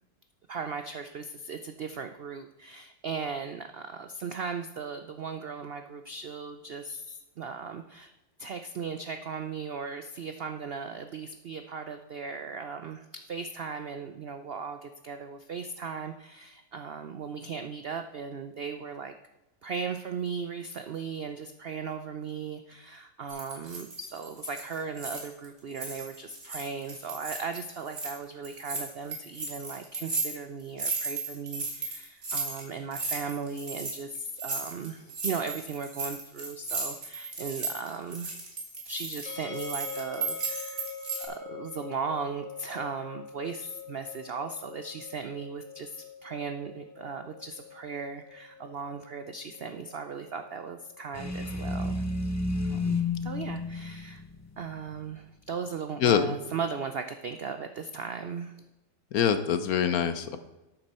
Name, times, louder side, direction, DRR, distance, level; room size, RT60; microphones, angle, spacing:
voice 1, 0.5-8.1 8.4-19.1 19.6-38.3 38.8-40.9 41.2-52.1 52.6-54.2 54.6-58.6, right 5 dB, 80° right, 8 dB, 0.5 m, -37 dB
sound 1, 23.3-25.5 25.7-28.1 28.4-41.2, right 3 dB, 45° right, 2.7 m, -35 dB
sound 2, 39.3-52.2, left 6 dB, 5° left, 2.4 m, -45 dB
sound 3, 51.1-55.1, left 3 dB, 25° left, 0.4 m, -31 dB
voice 2, 59.1-60.4, left 8 dB, 65° left, 10 dB, 1.2 m, -24 dB
12.0 x 8.9 x 4.3 m, 1.0 s
omnidirectional pair, 1.7 m